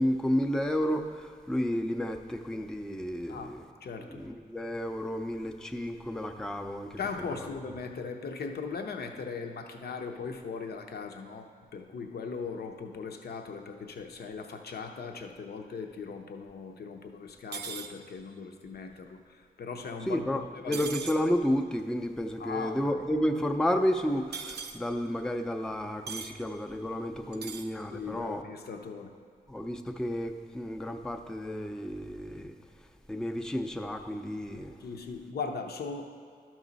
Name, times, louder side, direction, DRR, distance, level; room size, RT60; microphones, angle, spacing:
voice 1, 0.0-3.7 4.1-7.0 7.3-7.5 20.1-28.4 29.5-32.5 33.1-34.8, equal, 5° left, 4 dB, 0.5 m, -31 dB
voice 2, 3.8-4.2 7.0-11.5 11.7-20.8 22.4-23.0 27.9-29.1 34.8-36.1, left 5 dB, 70° left, 5 dB, 0.7 m, -39 dB
sound 1, 17.5-17.9 20.7-21.2 24.3-24.8 26.1-26.3 27.3-27.7, right 6 dB, 80° right, 0.6 m, -38 dB
12.5 x 6.2 x 4.0 m, 2.2 s
wide cardioid pair, 110°, 17 cm